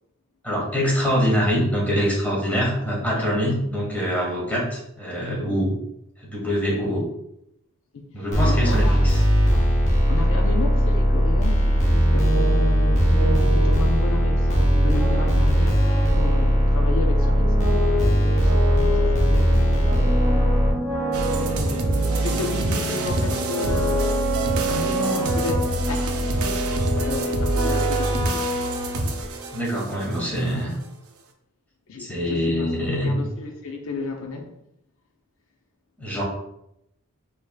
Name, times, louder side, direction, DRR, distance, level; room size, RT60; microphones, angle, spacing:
voice 1, 0.4-5.7 6.2-7.0 8.1-9.2 29.5-30.8 32.0-33.2 36.0-36.2, equal, 5° left, -4 dB, 1.1 m, -24 dB
voice 2, 7.9-9.1 9.5-9.8 10.1-18.0 18.3-19.6 21.6-24.1 24.6-26.2 26.9-28.4 30.5-30.8 31.9-32.7 33.0-34.5, left 3 dB, 65° left, 3 dB, 0.5 m, -33 dB
sound 1, 8.3-20.7, equal, 35° left, 0.8 m, -19 dB
sound 2, 11.9-29.5, right 1 dB, 45° right, 1.0 m, -28 dB
sound 3, 21.1-30.2, right 1 dB, 70° right, 0.5 m, -26 dB
4.7 x 2.9 x 2.2 m, 0.78 s
head